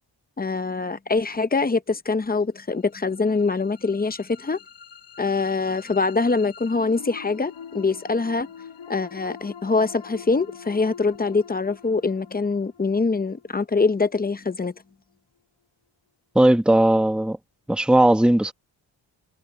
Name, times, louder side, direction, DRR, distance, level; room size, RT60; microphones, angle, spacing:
voice 1, 0.4-4.6 5.2-8.5 8.9-14.7, left 4 dB, 20° left, 0.7 m, -24 dB
sound 1, 2.9-14.9, left 7 dB, 65° left, 4.2 m, -45 dB
voice 2, 16.3-17.4 17.7-18.5, right 1 dB, ahead, 1.2 m, -17 dB
wide cardioid pair, 150°, 46 cm